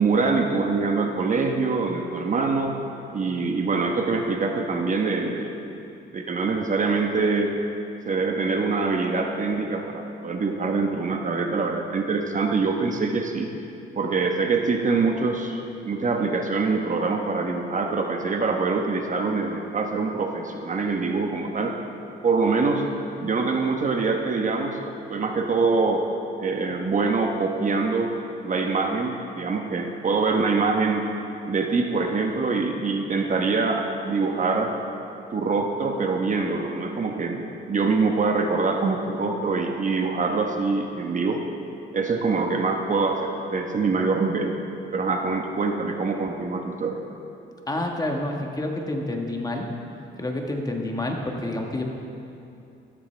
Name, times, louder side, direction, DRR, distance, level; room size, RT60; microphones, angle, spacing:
voice 1, 0.0-2.7 3.1-5.5 6.1-7.5 8.1-13.5 14.0-15.6 15.8-21.8 22.2-22.8 23.2-24.8 25.1-26.0 26.4-28.1 28.4-31.0 31.5-34.7 35.3-41.4 41.9-44.5 44.9-47.0, right 4 dB, 40° right, 3 dB, 1.0 m, -24 dB
voice 2, 47.7-49.7 50.2-51.8, left 1 dB, 20° left, 1 dB, 1.4 m, -28 dB
13.5 x 13.5 x 3.4 m, 2.7 s
cardioid pair, 90°, 20 cm